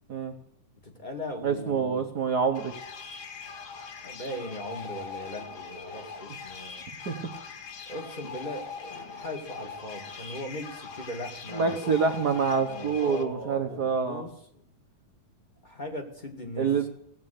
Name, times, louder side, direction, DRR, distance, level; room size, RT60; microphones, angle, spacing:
voice 1, 0.8-2.0 4.0-6.8 7.9-14.3 15.6-16.7, left 1 dB, 20° left, 4 dB, 1.5 m, -39 dB
voice 2, 1.4-2.7 7.0-7.2 11.5-14.2 16.6-16.9, right 5 dB, 70° right, 4 dB, 0.9 m, -26 dB
sound 1, 2.6-13.2, left 5 dB, 60° left, 2.5 m, -41 dB
17.5 x 9.0 x 8.3 m, 0.73 s
omnidirectional pair, 3.7 m